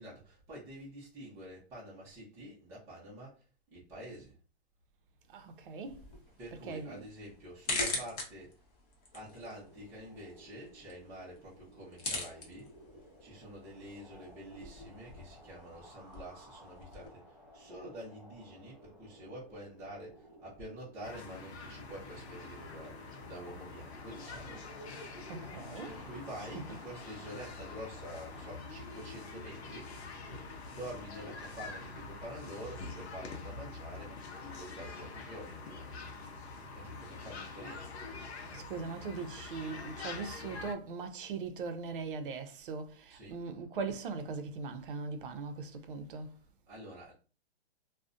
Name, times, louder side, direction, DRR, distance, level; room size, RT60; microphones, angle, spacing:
voice 1, 0.0-4.4 6.4-8.5 9.1-12.7 13.2-24.7 25.9-29.9 30.6-36.2 36.5-37.9 43.1-43.4 46.7-47.1, right 1 dB, 10° right, 0.5 m, -48 dB
voice 2, 5.3-6.1 6.5-7.1 25.3-26.1 26.4-26.8 38.5-46.4, right 4 dB, 55° right, 0.5 m, -40 dB
sound 1, 5.8-17.1, left 3 dB, 35° left, 0.7 m, -43 dB
sound 2, 9.1-28.5, equal, 20° left, 1.1 m, -57 dB
sound 3, 21.0-40.7, left 4 dB, 80° left, 0.7 m, -45 dB
2.4 x 2.1 x 2.4 m
hypercardioid pair, 150°, 32 cm